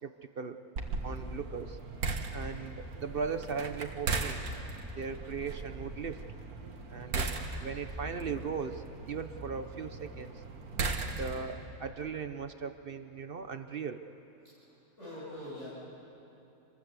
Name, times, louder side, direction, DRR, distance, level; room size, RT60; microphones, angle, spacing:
voice 1, 0.0-0.6 1.0-1.8 2.3-4.5 4.9-6.2 6.9-7.3 7.6-10.3 11.2-14.0, right 5 dB, 50° right, 9 dB, 0.8 m, -38 dB
sound 1, 0.8-11.6, right 3 dB, 80° right, 2.0 m, -38 dB
voice 2, 15.0-15.7, left 1 dB, 50° left, -10 dB, 8.5 m, -44 dB
26.5 x 21.0 x 8.2 m, 2.9 s
omnidirectional pair, 1.5 m